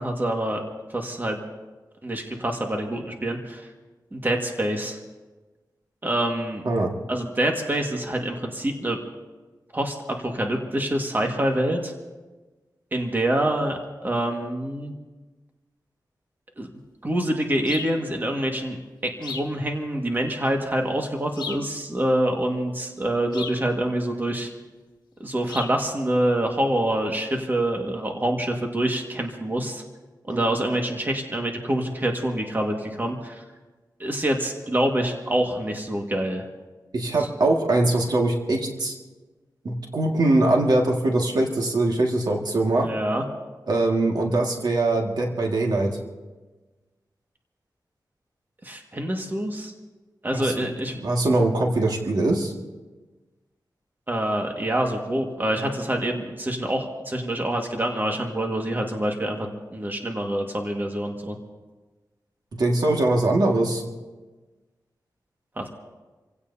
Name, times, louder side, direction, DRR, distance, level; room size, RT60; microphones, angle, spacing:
voice 1, 0.0-1.4 2.0-3.7 4.1-5.0 6.0-6.6 7.1-9.0 9.7-11.9 12.9-14.9 16.6-16.7 17.0-18.8 19.0-24.5 25.2-29.8 30.3-33.4 34.0-36.5 42.8-43.2 48.6-49.7 50.2-51.0 54.1-61.3 65.6-65.7, right 1 dB, 25° right, 2 dB, 1.8 m, -26 dB
sound 1, 17.7-18.0 19.2-19.6 21.4-21.7 23.3-23.7 25.5-25.8, left 5 dB, 75° left, 1.5 m, -35 dB
voice 2, 36.9-39.0 39.6-42.9 43.7-45.9 50.3-50.7 51.0-52.5 62.5-63.8, right 2 dB, 65° right, 0 dB, 1.9 m, -22 dB
27.5 x 16.5 x 2.8 m, 1.2 s
wide cardioid pair, 105°, 7 cm